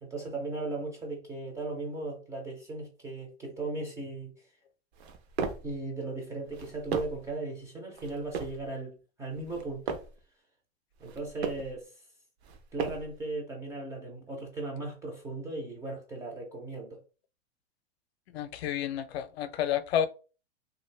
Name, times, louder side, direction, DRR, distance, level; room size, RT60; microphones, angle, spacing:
voice 1, 0.0-4.3 5.6-10.0 11.0-11.9 12.7-17.0, right 2 dB, 10° right, 0.3 m, -37 dB
sound 1, 4.9-5.7 6.4-7.3 8.0-8.6 9.3-10.2 10.9-11.7 12.4-13.2, right 6 dB, 70° right, 0.7 m, -37 dB
voice 2, 18.3-20.1, left 10 dB, 70° left, 0.5 m, -30 dB
2.6 x 2.6 x 3.1 m
supercardioid pair, 145°, 33 cm